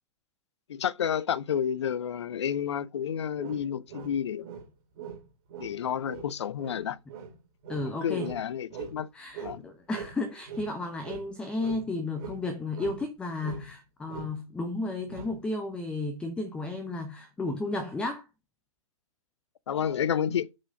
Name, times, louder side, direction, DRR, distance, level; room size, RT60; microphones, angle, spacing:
voice 1, 0.7-4.5 5.6-7.0 7.9-9.1 9.4-9.7 19.7-20.5, left 8 dB, 50° left, 0.6 m, -30 dB
sound 1, 3.4-4.7 4.9-9.0 9.3-11.3 11.6-13.1 13.4-13.8 14.1-14.4 15.1-15.4, right 6 dB, 35° right, 2.6 m, -42 dB
voice 2, 7.7-8.3 9.1-18.3, left 2 dB, 5° left, 0.7 m, -33 dB
7.4 x 4.8 x 5.2 m
figure-of-eight pair, 125°, 18 cm